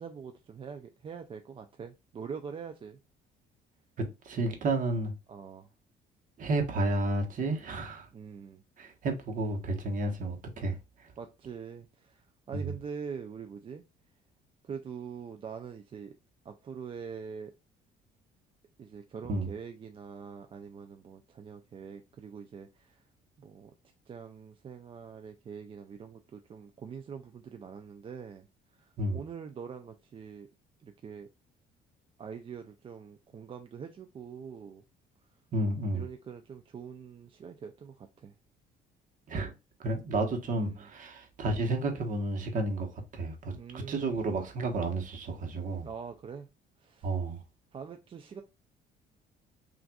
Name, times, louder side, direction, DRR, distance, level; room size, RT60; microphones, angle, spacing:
voice 1, 0.0-3.0 5.3-5.7 8.1-8.6 11.2-13.8 14.6-16.1 16.4-17.5 18.8-23.0 23.4-23.7 24.1-28.5 28.8-30.5 30.8-31.3 32.2-34.8 35.9-38.3 40.6-40.9 43.5-44.2 45.8-46.5 46.8-47.1 47.7-48.4, right 6 dB, 30° right, 0.4 m, -44 dB
voice 2, 4.0-5.1 6.4-8.1 8.8-10.8 12.5-12.7 19.3-19.5 29.0-29.2 35.5-36.1 39.3-39.5 39.8-45.9 47.0-47.4, right 2 dB, 50° right, 1.1 m, -31 dB
5.9 x 2.5 x 2.3 m
cardioid pair, 110°, 17 cm